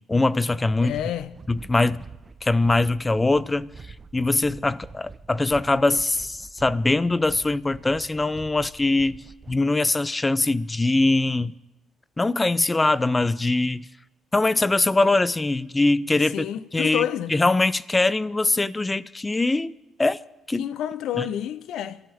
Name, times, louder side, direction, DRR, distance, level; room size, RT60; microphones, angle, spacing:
voice 1, 0.1-1.0 1.5-2.0 2.4-3.7 4.1-9.2 9.5-11.5 12.2-13.8 14.3-16.5 16.7-17.0 17.3-20.2 20.5-20.7, left 2 dB, 20° left, 0.5 m, -22 dB
sound 1, 0.6-9.6, right 4 dB, 30° right, 0.8 m, -46 dB
voice 2, 0.8-1.3 16.2-17.4 20.6-22.0, left 11 dB, 80° left, 0.7 m, -29 dB
27.0 x 13.0 x 3.6 m
cardioid pair, 90°, 0 cm